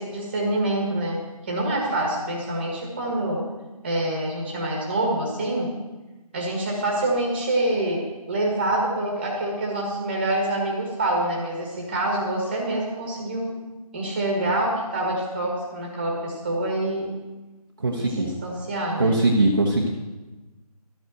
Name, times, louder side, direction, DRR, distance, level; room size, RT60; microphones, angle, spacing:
voice 1, 0.0-3.4 3.8-5.7 6.3-8.0 8.3-13.6 13.9-17.1 17.9-19.2, right 1 dB, 15° right, -1 dB, 1.6 m, -26 dB
voice 2, 17.8-18.3 19.0-19.9, right 2 dB, 35° right, -2 dB, 1.0 m, -21 dB
12.5 x 5.5 x 7.6 m, 1.1 s
figure-of-eight pair, 165°, 20 cm